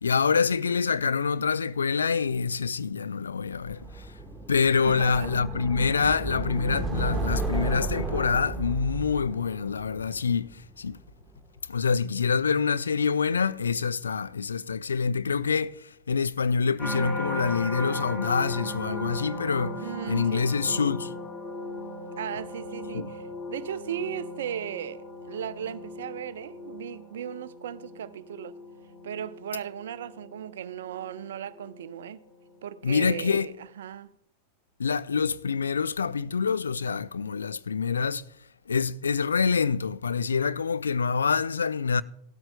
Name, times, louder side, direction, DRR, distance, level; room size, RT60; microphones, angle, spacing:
voice 1, 0.0-4.1 4.5-11.0 11.7-21.1 22.9-23.1 32.8-33.5 34.8-38.2 38.7-42.0, left 5 dB, 70° left, 0.3 m, -26 dB
sound 1, 3.6-10.7, right 3 dB, 10° right, 1.2 m, -33 dB
voice 2, 4.8-5.3 19.8-20.8 22.2-28.5 29.0-32.2 32.6-34.1, right 9 dB, 60° right, 0.5 m, -37 dB
sound 2, 16.8-32.0 32.5-32.9, left 1 dB, 30° left, 2.4 m, -37 dB
17.0 x 13.0 x 2.2 m
figure-of-eight pair, 90°, 0 cm